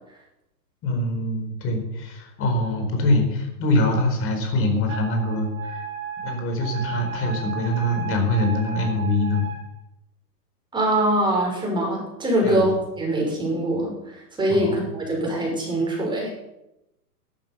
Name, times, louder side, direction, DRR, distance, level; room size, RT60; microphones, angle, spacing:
voice 1, 0.8-5.8 6.2-9.4 12.4-12.7 14.5-14.9, left 1 dB, 25° left, 4 dB, 4.5 m, -24 dB
Wind instrument woodwind instrument, 4.9-9.6, right 7 dB, 25° right, 5.8 m, -34 dB
voice 2, 10.7-13.9 14.4-16.3, right 1 dB, 10° right, -2 dB, 6.4 m, -23 dB
12.5 x 12.0 x 7.0 m, 0.87 s
hypercardioid pair, 135°, 49 cm